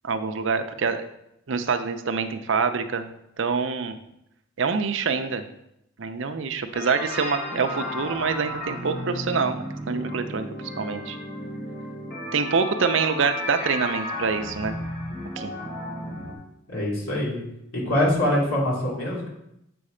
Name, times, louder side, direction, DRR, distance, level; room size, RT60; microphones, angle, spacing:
voice 1, 0.0-1.1 1.5-3.1 3.4-4.0 4.6-5.4 6.0-10.5 10.8-11.2 12.3-14.8 15.4-15.5, right 5 dB, 60° right, 9 dB, 0.6 m, -26 dB
sound 1, 6.7-16.3, equal, 50° left, 2.4 m, -33 dB
voice 2, 16.7-17.4 17.7-19.3, left 1 dB, 80° left, -4 dB, 2.8 m, -24 dB
7.7 x 4.2 x 5.0 m, 0.80 s
head